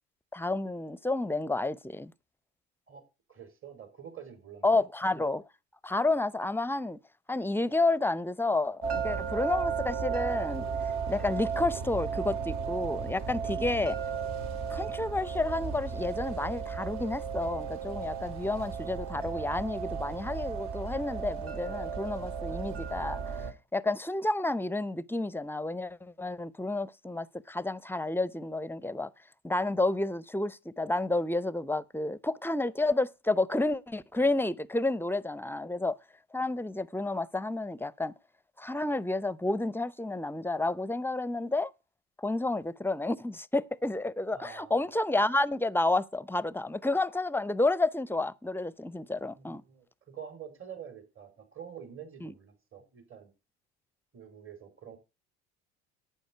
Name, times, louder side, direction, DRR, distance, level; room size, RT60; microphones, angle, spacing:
voice 1, 0.3-2.1 4.6-5.5 5.8-7.0 7.3-14.0 14.7-23.5 23.7-29.1 29.4-36.0 36.3-38.1 38.6-41.7 42.2-49.6 52.2-52.3, left 2 dB, 5° left, 0.7 m, -30 dB
voice 2, 2.9-4.8 44.3-44.8 49.3-53.3 54.1-55.0, right 8 dB, 40° right, 5.0 m, -47 dB
sound 1, 8.8-23.5, right 6 dB, 60° right, 2.6 m, -34 dB
11.5 x 9.2 x 4.5 m
hypercardioid pair, 65°, 32 cm